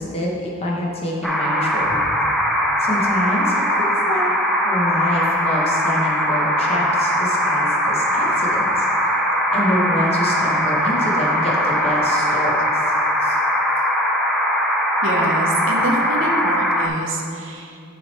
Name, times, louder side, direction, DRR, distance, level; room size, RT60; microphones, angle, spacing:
voice 1, 0.0-2.0 2.8-4.4 4.6-8.9 9.5-12.9 13.2-13.4, left 1 dB, 30° left, -3 dB, 1.0 m, -26 dB
sound 1, 1.2-16.9, equal, ahead, 0.4 m, -20 dB
voice 2, 15.0-17.8, right 1 dB, 65° right, 1 dB, 0.8 m, -26 dB
10.0 x 3.4 x 4.1 m, 2.5 s
head